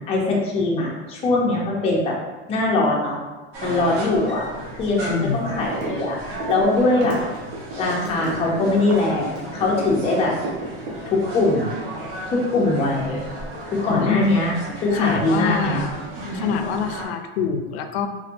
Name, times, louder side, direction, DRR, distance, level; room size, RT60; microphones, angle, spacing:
voice 1, 0.1-2.1 2.5-3.2 3.6-4.4 4.8-7.2 7.8-10.3 11.1-11.7 12.3-13.2 13.7-15.8, left 2 dB, 20° left, -3 dB, 0.6 m, -21 dB
sound 1, 3.5-17.1, right 1 dB, 50° right, 1.1 m, -34 dB
voice 2, 5.1-5.5 13.9-14.3 14.9-16.0 16.3-18.1, left 7 dB, 75° left, 7 dB, 0.5 m, -25 dB
sound 2, 5.7-6.0 6.3-10.1 10.4-11.3, right 2 dB, 75° right, 1.2 m, -31 dB
3.6 x 3.1 x 2.5 m, 1.2 s
supercardioid pair, 170°, 31 cm